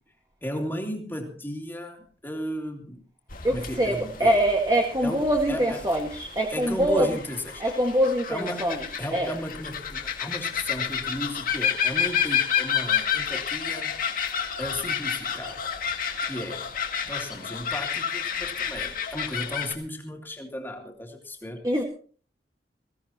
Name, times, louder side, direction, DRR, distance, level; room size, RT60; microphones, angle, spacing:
voice 1, 0.4-3.0 3.5-4.4 5.0-5.8 6.5-7.6 8.3-15.7 16.3-16.7 17.1-21.7, equal, 10° left, 2 dB, 2.8 m, -35 dB
sound 1, 3.3-19.7, left 8 dB, 50° left, 2.0 m, -30 dB
voice 2, 3.4-7.1 7.6-8.9 9.1-9.3 21.6-21.8, right 1 dB, 20° right, 1 dB, 1.8 m, -24 dB
22.0 x 16.5 x 3.0 m, 0.42 s
head